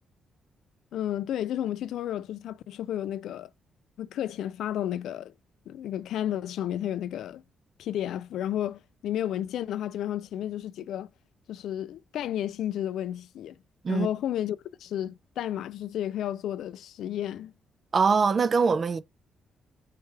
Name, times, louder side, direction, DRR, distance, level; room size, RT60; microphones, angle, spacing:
voice 1, 0.9-3.5 4.0-5.3 5.7-7.4 7.8-11.1 11.5-13.6 13.9-17.5, left 11 dB, 75° left, 0.3 m, -32 dB
voice 2, 17.9-19.0, right 5 dB, 30° right, 0.4 m, -22 dB
4.5 x 3.3 x 3.3 m
cardioid pair, 170°, 0 cm